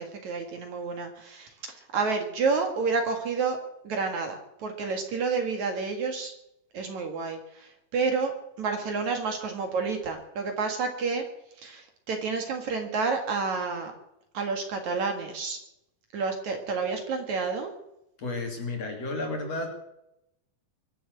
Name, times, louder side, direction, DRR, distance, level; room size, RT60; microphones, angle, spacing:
voice 1, 0.0-3.6 3.8-6.3 6.7-8.3 8.6-11.3 11.6-13.9 14.3-15.6 16.1-17.7, right 4 dB, 55° right, 4 dB, 2.9 m, -29 dB
voice 2, 18.2-19.7, left 2 dB, 45° left, 2 dB, 3.6 m, -32 dB
23.5 x 7.8 x 7.8 m, 0.84 s
omnidirectional pair, 4.3 m